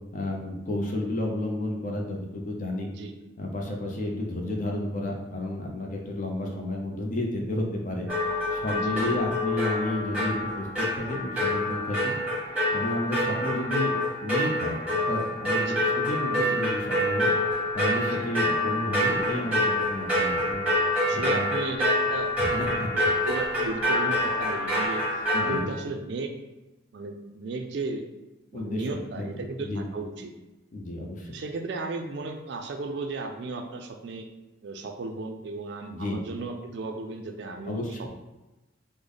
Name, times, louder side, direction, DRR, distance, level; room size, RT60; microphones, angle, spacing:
voice 1, 0.1-2.9 3.4-8.1 8.5-12.2 12.7-17.3 17.7-20.7 21.1-21.5 22.4-23.1 25.3-25.7 28.5-29.3 29.6-29.9 30.7-31.3 35.9-36.2 37.7-38.0, left 1 dB, 40° left, 0 dB, 0.5 m, -31 dB
sound 1, 8.1-25.6, left 1 dB, 5° right, 1.0 m, -26 dB
voice 2, 8.8-9.2 15.6-15.8 18.1-18.3 20.9-26.3 26.9-28.0 28.5-30.3 31.3-34.3 34.6-38.1, right 3 dB, 60° right, 4 dB, 0.3 m, -35 dB
3.3 x 2.1 x 3.7 m, 1.1 s
head